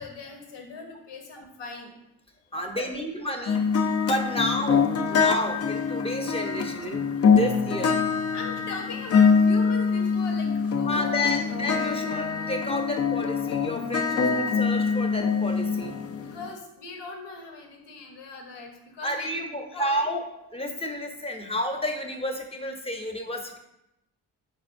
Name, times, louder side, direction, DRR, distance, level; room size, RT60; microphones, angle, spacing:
voice 1, 0.0-1.9 2.6-3.5 4.3-4.5 8.3-10.5 10.8-11.4 16.2-20.0, left 3 dB, 65° left, 3 dB, 1.0 m, -40 dB
voice 2, 2.5-3.6 4.1-7.9 10.9-15.9 19.0-20.2 20.5-23.6, left 1 dB, 15° left, 4 dB, 0.8 m, -31 dB
sound 1, 3.5-16.5, left 5 dB, 35° left, 0.4 m, -24 dB
5.1 x 4.1 x 2.6 m, 0.86 s
supercardioid pair, 60°, 45 cm